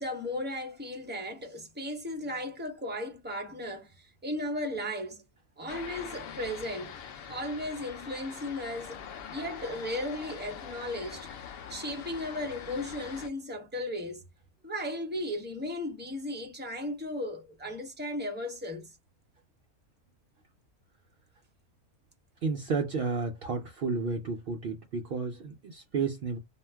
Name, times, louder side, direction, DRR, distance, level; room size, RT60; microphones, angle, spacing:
voice 1, 0.0-5.2 5.6-7.0 7.3-9.0 9.3-11.3 11.7-14.2 14.6-18.9, left 1 dB, 15° right, 0.3 m, -36 dB
sound 1, 5.7-13.3, left 7 dB, 80° left, 0.5 m, -43 dB
voice 2, 22.4-26.4, right 4 dB, 75° right, 0.5 m, -32 dB
2.5 x 2.2 x 3.3 m
omnidirectional pair, 1.6 m